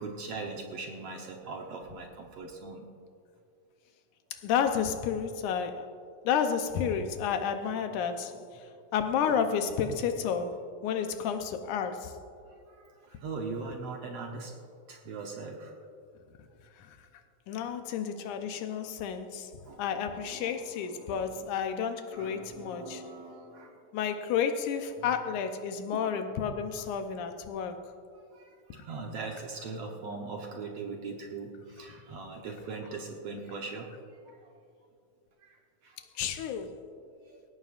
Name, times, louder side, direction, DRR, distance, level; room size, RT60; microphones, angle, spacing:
voice 1, 0.0-2.8 8.3-8.4 9.2-9.7 10.8-10.9 12.5-12.6 12.8-14.5 14.9-15.7 18.2-18.3 19.7-21.5 22.1-23.7 25.0-25.1 25.9-26.1 26.7-26.9 28.3-33.9 35.4-35.6 35.8-36.0 37.3-37.4, right 4 dB, 65° right, 1 dB, 1.6 m, -41 dB
voice 2, 4.3-5.8 6.3-8.6 8.9-12.1 16.8-16.9 17.5-19.5 19.8-23.0 23.9-27.8 36.2-36.7, left 7 dB, 75° left, 7 dB, 2.2 m, -31 dB
18.0 x 17.0 x 2.5 m, 2.4 s
omnidirectional pair, 3.8 m